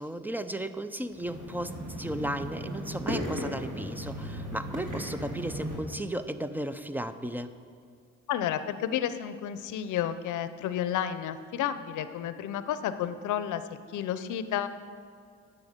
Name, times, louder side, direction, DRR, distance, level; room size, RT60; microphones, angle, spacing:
voice 1, 0.0-7.5, right 1 dB, 5° right, 11 dB, 0.5 m, -35 dB
sound 1, 1.1-5.7, equal, 55° right, 3.6 m, -36 dB
voice 2, 8.3-13.6 13.9-14.7, left 10 dB, 80° left, 12 dB, 0.7 m, -31 dB
10.5 x 7.8 x 6.6 m, 2.2 s
cardioid pair, 90°, 30 cm